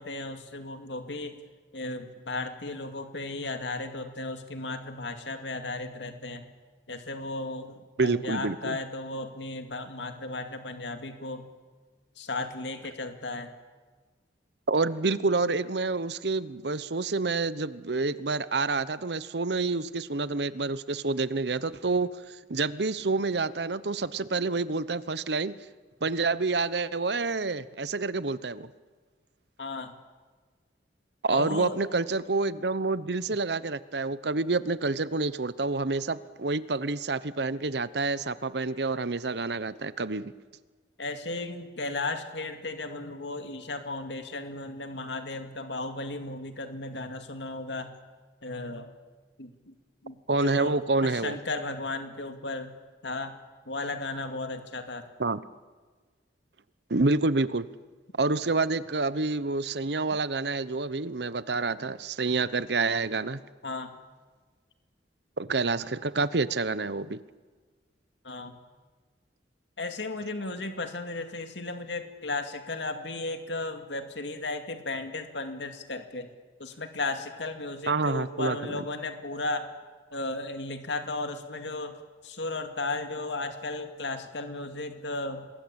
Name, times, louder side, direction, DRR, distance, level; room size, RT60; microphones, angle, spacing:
voice 1, 0.0-1.4 1.7-6.5 6.9-11.5 12.2-13.5 29.6-30.0 31.3-31.8 41.0-48.0 48.4-48.9 49.4-49.7 50.0-52.8 53.0-53.4 53.7-55.1 63.6-64.0 68.2-68.6 69.8-76.3 76.6-79.7 80.1-85.5, left 2 dB, 80° left, 7 dB, 2.3 m, -35 dB
voice 2, 8.0-8.8 14.7-25.5 26.0-28.7 31.2-40.3 50.3-51.4 55.2-55.4 56.9-57.7 58.2-63.4 65.4-67.2 77.9-78.6, right 3 dB, 65° right, 16 dB, 0.9 m, -28 dB
26.5 x 21.0 x 8.8 m, 1.4 s
head